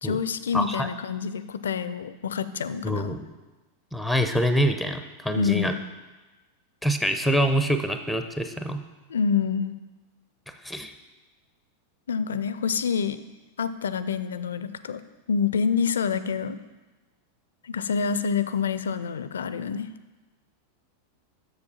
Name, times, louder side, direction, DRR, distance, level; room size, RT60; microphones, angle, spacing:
voice 1, 0.0-3.1 5.4-5.8 9.1-9.7 12.1-13.2 13.6-15.0 15.3-16.6 17.6-19.9, left 6 dB, 65° left, 14 dB, 0.4 m, -27 dB
voice 2, 0.5-0.9 2.8-3.3 3.9-5.7 6.8-8.8 10.6-10.9, equal, ahead, 8 dB, 0.6 m, -25 dB
7.1 x 6.6 x 5.6 m, 1.2 s
figure-of-eight pair, 90°, 0 cm